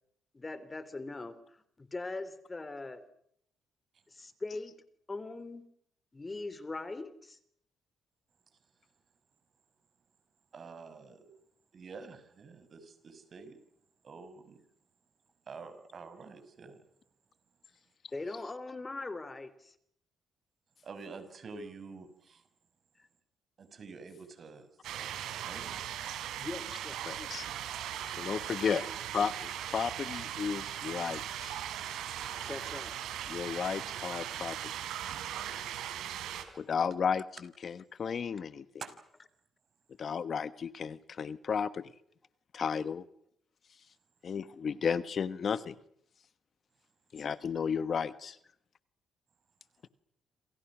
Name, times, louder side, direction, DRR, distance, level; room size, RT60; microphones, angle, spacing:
voice 1, 0.3-1.4 1.8-3.0 4.1-4.7 5.1-5.6 6.1-7.4 18.1-19.7 26.4-27.0 28.7-28.9 32.5-32.9, left 3 dB, 25° left, 13 dB, 3.2 m, -40 dB
voice 2, 10.5-11.3 11.7-13.6 14.0-14.6 15.5-16.8 20.8-22.4 23.6-25.9 32.4-32.5 38.8-38.9, right 4 dB, 50° right, 10 dB, 6.0 m, -48 dB
sound 1, 24.8-36.4, right 11 dB, 85° right, 4.1 m, -39 dB
voice 3, 27.0-27.4 28.2-28.8 29.1-31.6 33.3-34.7 36.6-37.2 37.6-38.6 40.0-41.9 42.5-43.0 44.2-45.8 47.1-48.4, left 6 dB, 50° left, 14 dB, 1.2 m, -33 dB
28.0 x 28.0 x 6.2 m, 0.70 s
cardioid pair, 90°, 0 cm